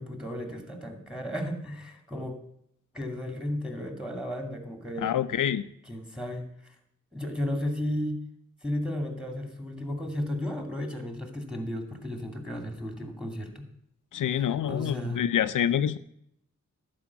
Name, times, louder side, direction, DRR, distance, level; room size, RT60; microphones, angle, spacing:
voice 1, 0.0-2.4 2.9-5.1 5.9-6.5 7.1-8.2 8.6-13.6 14.3-15.2, left 1 dB, ahead, 5 dB, 2.4 m, -34 dB
voice 2, 5.0-5.6 14.1-16.0, left 10 dB, 85° left, 12 dB, 0.5 m, -26 dB
11.0 x 5.0 x 8.3 m, 0.72 s
cardioid pair, 50°, 31 cm